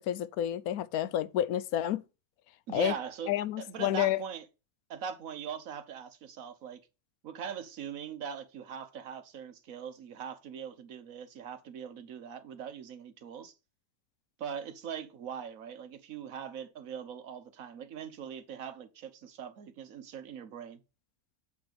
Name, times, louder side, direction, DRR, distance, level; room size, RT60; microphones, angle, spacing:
voice 1, 0.0-2.0 2.7-2.9 3.3-4.2, left 11 dB, 80° left, 1.1 m, -30 dB
voice 2, 2.7-4.4 4.9-6.8 7.2-13.5 14.4-20.8, right 7 dB, 70° right, 1.3 m, -41 dB
8.6 x 3.5 x 6.5 m
omnidirectional pair, 1.5 m